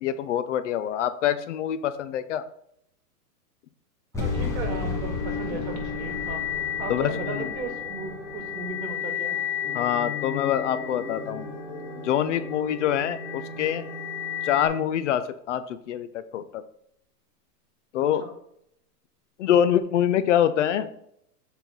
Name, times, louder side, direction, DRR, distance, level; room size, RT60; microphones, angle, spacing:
voice 1, 0.0-2.4 5.5-5.6 6.9-7.5 9.7-11.5 12.0-13.8 14.4-16.6 17.9-18.2 19.4-20.9, left 10 dB, 50° left, 12 dB, 0.5 m, -25 dB
sound 1, 4.1-9.3, left 3 dB, 5° left, 1.3 m, -34 dB
sound 2, 4.2-14.7, left 7 dB, 35° left, 2.0 m, -33 dB
voice 2, 4.2-6.4 6.8-9.4 18.2-18.3, right 4 dB, 60° right, 3 dB, 2.6 m, -36 dB
7.0 x 4.5 x 3.8 m, 0.73 s
hypercardioid pair, 150°, 48 cm